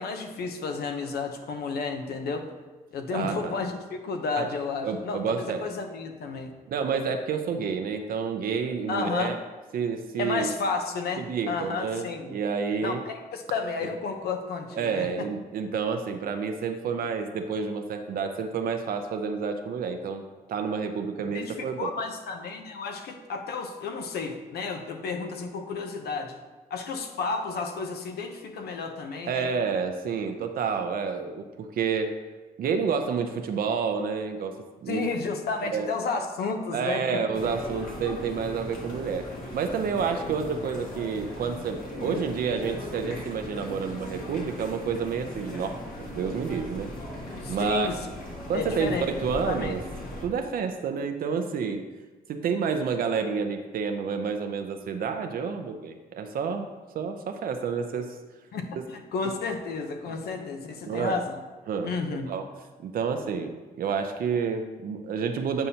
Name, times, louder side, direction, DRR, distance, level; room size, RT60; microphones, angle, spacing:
voice 1, 0.0-2.5 2.9-6.5 8.9-9.3 10.2-12.4 12.8-15.3 21.3-26.4 26.7-29.5 34.9-37.2 42.0-42.2 47.4-48.0 48.5-49.0 49.5-49.7 58.5-61.4 61.8-62.3, left 4 dB, 90° left, 5 dB, 0.8 m, -32 dB
voice 2, 3.1-3.5 4.4-4.5 4.8-5.7 6.7-9.4 9.7-10.5 11.2-13.0 14.7-20.2 20.5-21.9 29.2-32.2 32.6-35.0 35.7-35.9 36.7-39.3 39.5-46.9 47.5-47.9 48.5-49.8 50.2-51.9 52.3-56.7 56.9-58.2 58.8-58.9 60.8-61.2 61.7-61.9 62.3-62.5 62.8-65.7, right 6 dB, 65° right, 6 dB, 0.5 m, -29 dB
sound 1, 37.3-50.2, equal, 65° left, 1.5 m, -38 dB
8.9 x 5.5 x 2.8 m, 1.3 s
wide cardioid pair, 145°, 16 cm